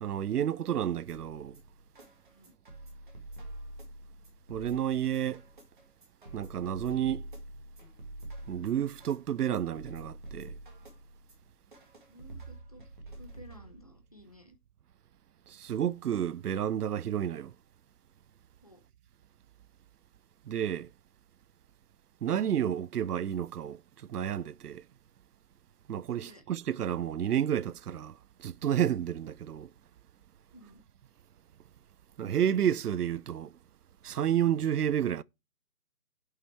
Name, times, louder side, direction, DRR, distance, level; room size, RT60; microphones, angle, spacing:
voice 1, 0.0-1.6 4.5-5.4 6.3-7.2 8.5-10.6 15.5-17.5 20.5-20.9 22.2-24.8 25.9-29.7 32.2-33.5 34.0-35.2, right 10 dB, 80° right, 0.6 m, -30 dB
sound 1, 1.1-14.0, right 1 dB, 30° right, 1.9 m, -47 dB
voice 2, 12.1-12.8 13.2-14.6 18.6-18.8 26.2-26.4 30.5-30.8, left 1 dB, 25° left, 0.8 m, -54 dB
8.2 x 5.7 x 4.5 m
hypercardioid pair, 180°, 45 cm